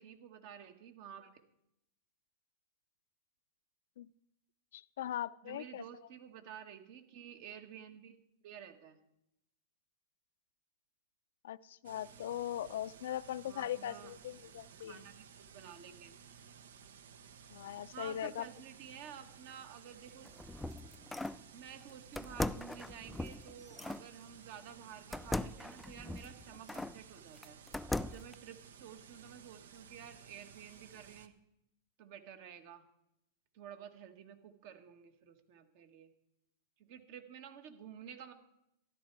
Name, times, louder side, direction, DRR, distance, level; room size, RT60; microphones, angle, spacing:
voice 1, 0.0-1.4 5.4-9.0 13.4-14.1 14.9-16.1 17.9-20.3 21.5-27.6 28.0-31.3 32.0-32.8 33.5-36.1 36.8-38.3, right 9 dB, 60° right, 7 dB, 1.7 m, -51 dB
voice 2, 4.7-5.8 11.4-15.0 17.5-18.5, left 11 dB, 75° left, 16 dB, 0.5 m, -40 dB
sound 1, 11.8-31.3, right 7 dB, 80° right, 0.9 m, -56 dB
sound 2, 20.1-21.4 22.2-24.1 25.1-27.0 27.4-28.3, left 2 dB, 5° left, 0.4 m, -39 dB
13.5 x 12.0 x 4.7 m, 0.81 s
hypercardioid pair, 115°, 0 cm